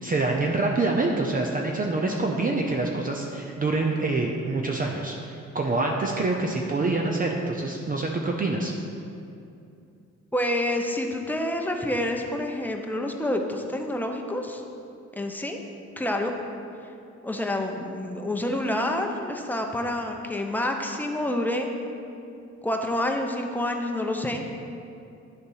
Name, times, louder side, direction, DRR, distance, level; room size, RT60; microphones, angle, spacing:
voice 1, 0.0-8.7, right 3 dB, 30° right, 1 dB, 0.6 m, -26 dB
voice 2, 10.3-14.6 15.2-15.6 16.0-16.3 17.2-21.7 22.6-24.4, left 1 dB, 5° left, 2 dB, 0.8 m, -28 dB
10.5 x 3.9 x 5.6 m, 2.6 s
cardioid pair, 90°, 30 cm